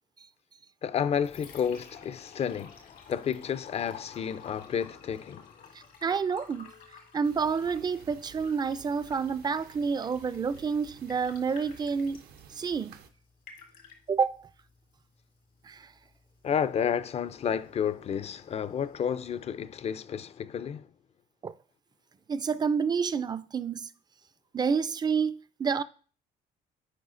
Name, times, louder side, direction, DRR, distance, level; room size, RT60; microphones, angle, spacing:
voice 1, 0.8-5.5 16.4-20.9, left 8 dB, 40° left, 0.4 m, -31 dB
Liquid, 0.9-19.9, left 6 dB, 80° left, 1.7 m, -54 dB
voice 2, 6.0-6.7 7.1-12.2 12.5-13.0 14.1-14.4 15.6-15.9 21.4-21.5 22.3-23.9 24.5-25.8, right 5 dB, 25° right, 0.3 m, -29 dB
sound 1, 7.2-13.1, right 8 dB, 80° right, 0.7 m, -53 dB
9.5 x 4.7 x 2.5 m
cardioid pair, 95°, 16 cm